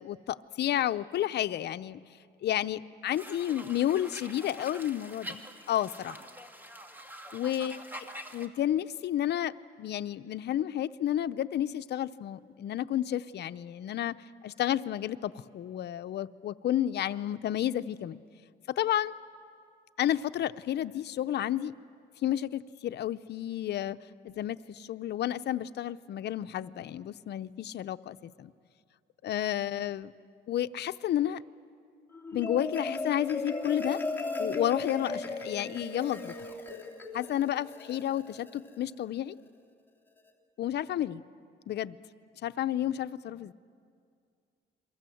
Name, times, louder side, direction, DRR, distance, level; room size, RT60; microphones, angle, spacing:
voice 1, 0.0-2.0 2.4-5.4 5.7-6.2 7.3-7.8 8.3-14.2 14.4-18.2 18.7-19.2 20.0-21.7 22.2-24.0 24.2-28.5 29.2-30.1 30.5-31.4 32.3-34.0 34.4-36.3 37.1-39.4 40.6-41.2 41.7-42.0 42.4-43.5, left 11 dB, 65° left, 11 dB, 0.7 m, -31 dB
Birds in park, 3.1-8.5, equal, 10° right, 1.9 m, -45 dB
Marimba xylophone, 32.1-38.7, left 3 dB, 10° left, 2.9 m, -36 dB
29.5 x 23.5 x 7.8 m, 2.3 s
cardioid pair, 115°, 19 cm